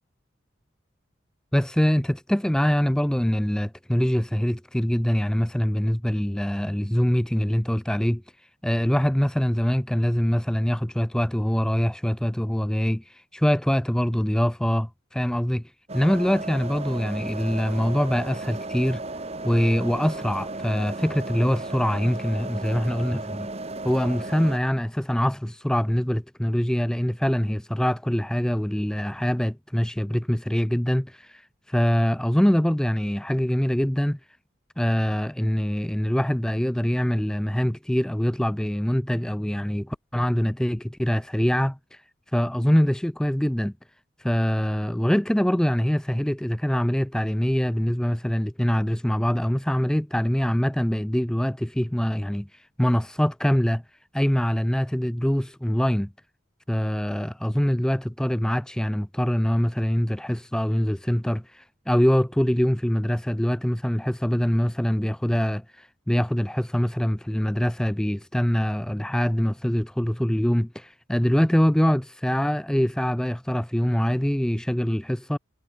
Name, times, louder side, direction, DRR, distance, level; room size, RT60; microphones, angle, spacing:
voice 1, 1.5-8.2 8.6-15.6 15.9-19.0 19.4-23.5 23.8-31.4 31.7-34.2 34.8-41.8 42.3-43.7 44.2-52.5 52.8-53.8 54.1-56.1 56.7-75.4, equal, 5° left, 0.4 m, -24 dB
sound 1, 15.9-24.6, right 2 dB, 30° right, 1.2 m, -35 dB
head